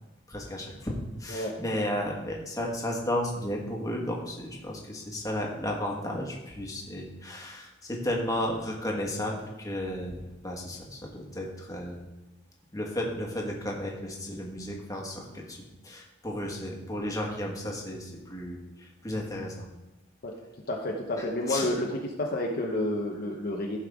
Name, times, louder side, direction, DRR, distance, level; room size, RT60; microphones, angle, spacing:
voice 1, 0.3-12.0 12.7-19.7 21.2-21.7, left 1 dB, 20° left, -1 dB, 1.6 m, -33 dB
voice 2, 1.3-1.9 20.2-20.3 20.7-23.8, left 1 dB, 50° left, 0 dB, 1.0 m, -30 dB
15.5 x 5.4 x 3.7 m, 1.0 s
head